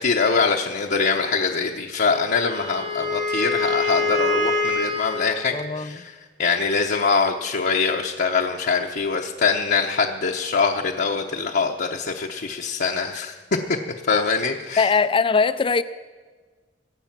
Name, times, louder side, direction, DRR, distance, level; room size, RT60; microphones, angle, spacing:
voice 1, 0.0-13.3 14.1-14.9, left 5 dB, 55° left, 0.8 m, -23 dB
Wind instrument woodwind instrument, 2.1-5.3, left 3 dB, 85° right, 2.8 m, -25 dB
voice 2, 5.5-5.9 14.8-15.8, left 4 dB, 30° left, 0.4 m, -20 dB
22.5 x 8.1 x 5.9 m
head